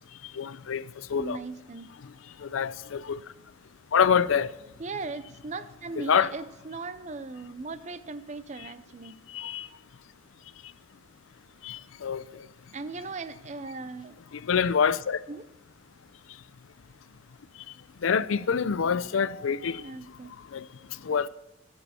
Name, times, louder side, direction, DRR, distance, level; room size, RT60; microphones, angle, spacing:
voice 1, 0.3-1.4 2.4-3.2 3.9-4.5 6.0-6.3 9.3-9.7 11.6-12.5 14.3-15.2 18.0-19.8 20.5-20.7 21.0-21.3, left 6 dB, 85° left, 0.5 m, -26 dB
voice 2, 1.2-1.9 4.8-9.2 12.7-14.2 15.3-15.5 19.8-20.3, right 3 dB, 35° right, 0.5 m, -38 dB
18.5 x 7.2 x 4.3 m
head